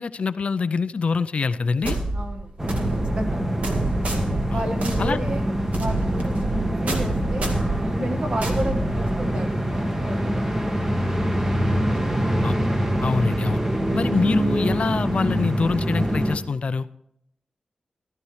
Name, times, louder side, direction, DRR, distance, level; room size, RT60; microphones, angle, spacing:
voice 1, 0.0-2.0 4.5-4.6 5.0-5.2 12.4-12.6 13.0-13.6 13.9-16.9, left 5 dB, 60° left, 12 dB, 0.4 m, -25 dB
sound 1, 1.8-9.5, right 2 dB, 75° right, 2.1 m, -28 dB
voice 2, 2.1-3.4 4.5-10.7 11.0-11.2 11.8-12.1, right 1 dB, 50° right, 5 dB, 1.5 m, -33 dB
sound 2, 2.6-16.4, equal, 20° right, 1.1 m, -24 dB
14.5 x 12.5 x 3.2 m, 0.72 s
wide cardioid pair, 125°, 2 cm